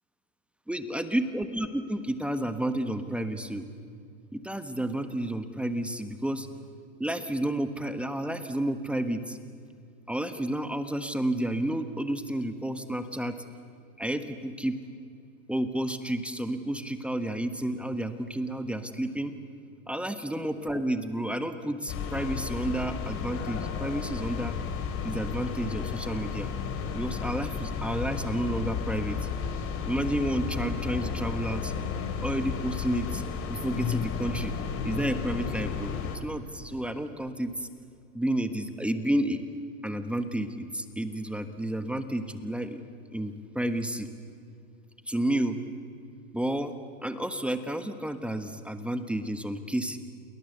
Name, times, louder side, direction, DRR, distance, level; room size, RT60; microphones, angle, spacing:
voice 1, 0.7-3.6 4.3-6.5 7.0-9.4 10.1-13.4 14.0-14.8 15.5-19.3 19.9-24.6 25.0-26.5 26.9-29.2 29.8-31.7 32.2-33.2 33.5-34.5 34.8-37.7 38.1-39.4 39.8-42.8 43.1-44.1 45.1-45.6 46.3-46.7 47.0-50.0, right 1 dB, 5° right, 9 dB, 1.4 m, -31 dB
sound 1, 21.9-36.2, left 6 dB, 35° left, 3.6 m, -33 dB
29.0 x 22.0 x 8.1 m, 2.5 s
supercardioid pair, 130°, 38 cm